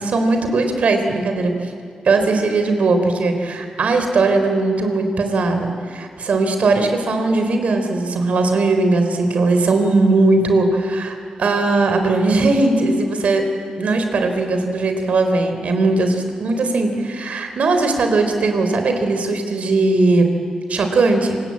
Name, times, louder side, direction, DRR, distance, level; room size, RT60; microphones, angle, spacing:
voice 1, 0.0-1.7 2.0-13.5 13.8-20.3 20.7-21.4, right 3 dB, 70° right, 6 dB, 3.7 m, -18 dB
26.5 x 20.5 x 8.8 m, 2.2 s
wide cardioid pair, 105°, 2 cm